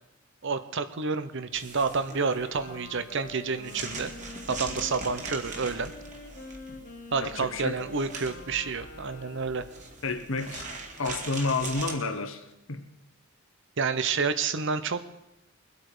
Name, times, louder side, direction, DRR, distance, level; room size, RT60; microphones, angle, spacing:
voice 1, 0.4-4.1 4.5-5.9 7.1-9.6 13.8-15.0, right 5 dB, 60° right, 12 dB, 0.9 m, -29 dB
sound 1, 1.5-11.9, right 3 dB, 35° right, 2.0 m, -41 dB
Wind instrument woodwind instrument, 2.0-9.9, left 2 dB, 40° left, 1.8 m, -46 dB
voice 2, 7.2-7.8 10.0-10.7 11.0-12.8, left 3 dB, 70° left, 7 dB, 1.4 m, -30 dB
22.5 x 8.4 x 5.0 m, 0.90 s
head